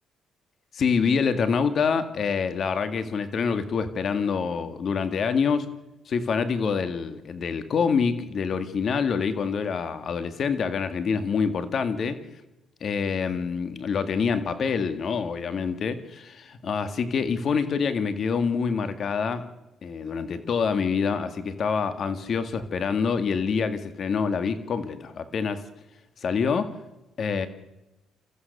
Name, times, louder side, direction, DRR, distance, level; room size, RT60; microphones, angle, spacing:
voice 1, 0.7-5.7 6.1-12.2 12.8-19.5 19.8-25.6 26.2-26.7 27.2-27.5, left 5 dB, 55° left, 10 dB, 2.0 m, -26 dB
29.0 x 14.5 x 6.8 m, 0.99 s
cardioid pair, 90°, 0 cm